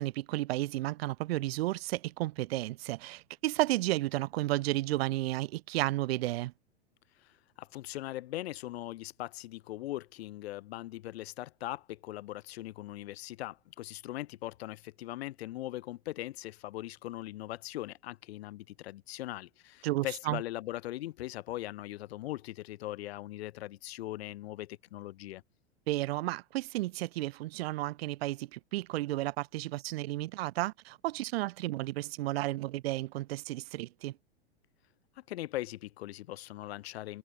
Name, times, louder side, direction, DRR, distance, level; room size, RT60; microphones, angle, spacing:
voice 1, 0.0-6.5 19.8-20.4 25.9-34.1, right 17 dB, 65° right, 0.8 m, -32 dB
voice 2, 7.2-25.4 35.2-37.2, left 15 dB, 65° left, 6.5 m, -40 dB
hypercardioid pair, 105°, 33 cm